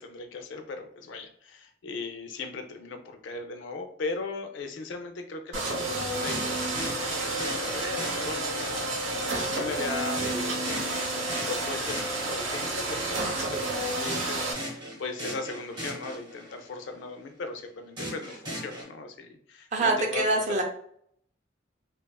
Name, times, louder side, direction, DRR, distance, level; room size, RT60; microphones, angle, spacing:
voice 1, 0.0-9.0 9.5-20.6, left 3 dB, 65° left, 6 dB, 0.4 m, -38 dB
sound 1, 5.5-14.5, right 2 dB, 85° right, 0.7 m, -30 dB
sound 2, 6.3-8.9 10.2-12.8 14.1-16.7 18.0-18.8, equal, 25° right, 0.8 m, -38 dB
voice 2, 19.7-20.6, right 2 dB, 40° right, 3 dB, 0.4 m, -24 dB
2.7 x 2.3 x 2.2 m, 0.64 s
head